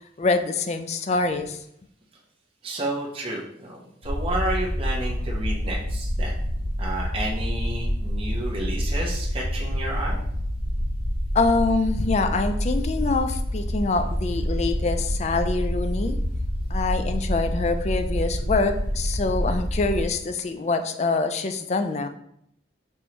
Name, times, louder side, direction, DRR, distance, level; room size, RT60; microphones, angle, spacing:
voice 1, 0.2-1.6 11.3-16.2 16.7-22.1, left 3 dB, 35° left, 8 dB, 0.3 m, -25 dB
voice 2, 2.6-6.4 6.8-10.2, right 1 dB, 30° right, -3 dB, 0.8 m, -31 dB
sound 1, 4.0-20.1, equal, 60° left, 1.2 m, -27 dB
5.3 x 3.1 x 2.9 m, 0.73 s
head